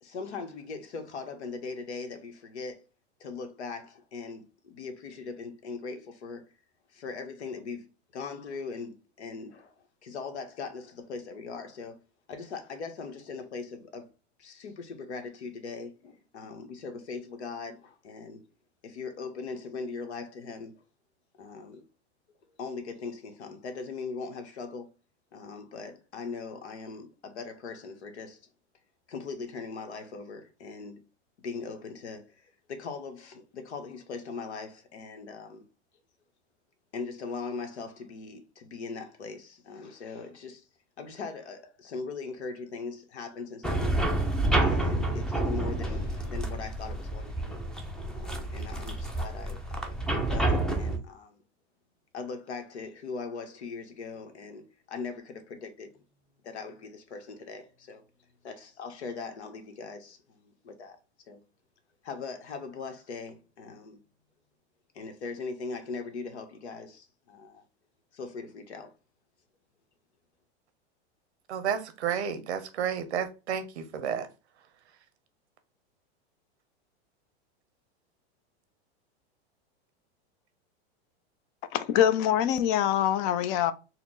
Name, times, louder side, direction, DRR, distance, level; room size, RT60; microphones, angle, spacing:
voice 1, 0.0-2.8 3.2-6.5 6.9-12.0 12.3-14.1 14.4-18.4 18.8-20.7 21.4-21.8 22.6-24.9 25.3-28.4 29.1-31.0 31.4-35.6 36.9-40.7 41.0-44.2 44.6-47.6 48.1-51.4 52.1-56.0 56.4-58.0 58.4-61.0 61.3-61.4 62.0-64.0 64.9-67.6 68.1-68.9, left 4 dB, 85° left, 1.0 m, -40 dB
sound 1, 43.6-51.0, right 2 dB, ahead, 0.5 m, -29 dB
voice 2, 71.5-74.3, right 8 dB, 85° right, 0.8 m, -31 dB
voice 3, 81.7-83.7, left 10 dB, 50° left, 0.6 m, -24 dB
4.2 x 2.1 x 3.9 m
hypercardioid pair, 110°, 33 cm